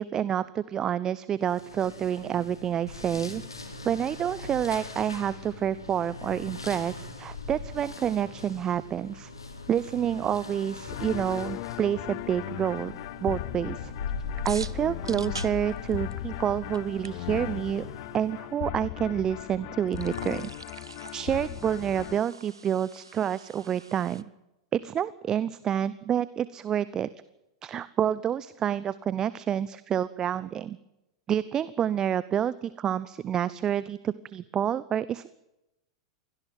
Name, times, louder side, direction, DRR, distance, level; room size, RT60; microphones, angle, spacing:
voice 1, 0.0-3.4 3.8-9.3 9.7-12.9 13.2-13.9 14.4-17.8 18.1-20.5 21.1-24.2 24.7-27.1 27.6-30.8 31.3-35.3, right 9 dB, 25° right, 18 dB, 0.8 m, -28 dB
sound 1, 1.4-18.6, left 4 dB, 85° left, 4.3 m, -40 dB
sound 2, 10.9-22.2, left 19 dB, 50° left, 0.7 m, -38 dB
sound 3, 14.5-16.4 16.7-16.8 17.0-17.1 19.9-24.2, right 4 dB, 85° right, 1.1 m, -44 dB
24.0 x 17.5 x 7.5 m, 0.92 s
figure-of-eight pair, 95°, 2 cm